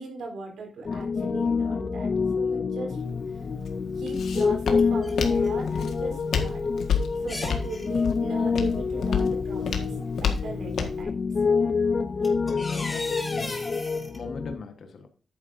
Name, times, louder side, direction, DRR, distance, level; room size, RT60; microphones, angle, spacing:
voice 1, 0.0-2.1 2.4-3.0 3.3-3.4 3.9-6.6 7.1-11.1, right 3 dB, 80° right, 0 dB, 4.0 m, -38 dB
Piano, 0.8-14.5, left 5 dB, 35° left, 0.4 m, -27 dB
Walk footsteps, 3.0-11.0, left 6 dB, 75° left, 1.6 m, -31 dB
sound 1, 3.7-3.8 4.5-5.6 5.9-6.0 6.6-6.7 7.2-7.9 9.3-9.4 10.0-10.4 11.6-11.7 12.0-14.2, left 2 dB, 20° left, 1.8 m, -37 dB
voice 2, 12.4-13.7 14.1-15.1, left 4 dB, 60° left, 6 dB, 1.2 m, -41 dB
10.5 x 8.9 x 2.6 m, 0.39 s
wide cardioid pair, 150°, 0 cm